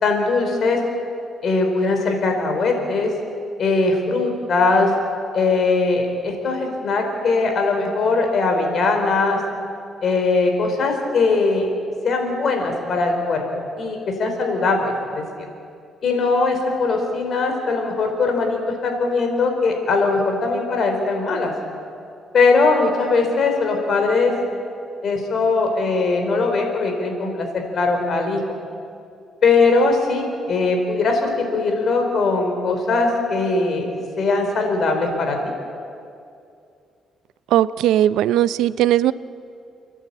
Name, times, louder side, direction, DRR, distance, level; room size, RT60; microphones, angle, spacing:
voice 1, 0.0-0.8 1.4-3.1 3.6-4.9 5.3-9.4 10.0-11.7 12.0-15.2 16.0-21.5 22.3-24.3 25.0-28.4 29.4-33.9 34.2-35.5, left 3 dB, 55° left, 3 dB, 4.4 m, -20 dB
voice 2, 37.5-39.1, right 12 dB, 85° right, 17 dB, 0.5 m, -18 dB
30.0 x 11.0 x 8.8 m, 2.5 s
cardioid pair, 90°, 0 cm